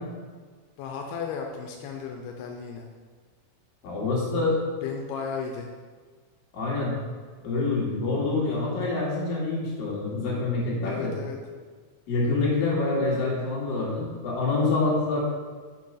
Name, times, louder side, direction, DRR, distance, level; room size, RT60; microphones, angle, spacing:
voice 1, 0.8-2.9 4.8-5.7 10.8-11.4, left 6 dB, 90° left, 2 dB, 2.7 m, -34 dB
voice 2, 3.8-4.6 6.5-6.9 7.4-11.1 12.1-15.2, left 3 dB, 65° left, -5 dB, 3.7 m, -26 dB
7.5 x 4.8 x 5.5 m, 1.5 s
omnidirectional pair, 4.6 m